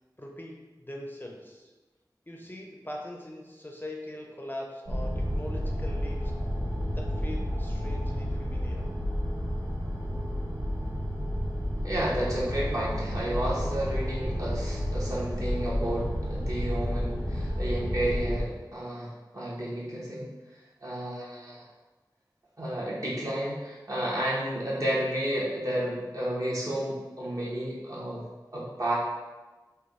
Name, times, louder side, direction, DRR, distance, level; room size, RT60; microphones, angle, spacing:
voice 1, 0.2-1.7 2.3-6.3 7.0-8.9, left 1 dB, 25° left, -1 dB, 0.4 m, -41 dB
sound 1, 4.9-18.4, equal, 70° right, 0.7 m, -31 dB
voice 2, 11.8-20.3 20.8-21.7 22.6-28.2 28.5-29.0, right 1 dB, 50° right, -6 dB, 1.0 m, -31 dB
3.4 x 2.2 x 3.6 m, 1.2 s
wide cardioid pair, 55°, 8 cm